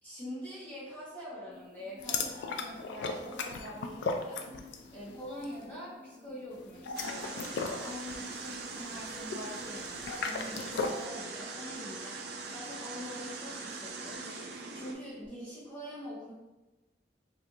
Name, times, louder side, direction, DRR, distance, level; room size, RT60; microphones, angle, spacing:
voice 1, 0.0-4.4 4.9-7.5 7.8-14.4 14.7-16.3, equal, 10° left, -9 dB, 0.7 m, -44 dB
sound 1, 1.5-15.3, left 1 dB, 45° left, 0.8 m, -53 dB
sound 2, 2.0-4.9 5.2-5.5 6.7-11.1, left 4 dB, 75° left, 0.3 m, -36 dB
sound 3, 6.9-14.9, right 4 dB, 60° right, 0.4 m, -42 dB
3.4 x 2.5 x 2.8 m, 1.1 s
head